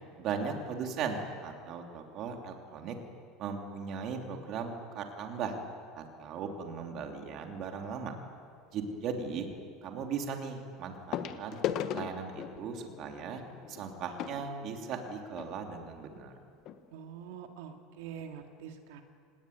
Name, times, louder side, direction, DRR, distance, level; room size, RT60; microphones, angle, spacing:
voice 1, 0.2-2.9 3.4-5.5 5.9-8.1 8.7-9.5 9.8-11.6 11.9-13.4 13.7-16.3, right 6 dB, 35° right, 3 dB, 2.9 m, -38 dB
sound 1, 7.5-7.8 9.5-9.6 11.1-15.5 16.3-16.4 16.6-16.8 17.3-17.4, left 10 dB, 35° left, 1.2 m, -38 dB
voice 2, 16.9-19.0, right 8 dB, 75° right, 4 dB, 2.2 m, -45 dB
27.0 x 19.5 x 9.4 m, 2.3 s
cardioid pair, 175°, 0 cm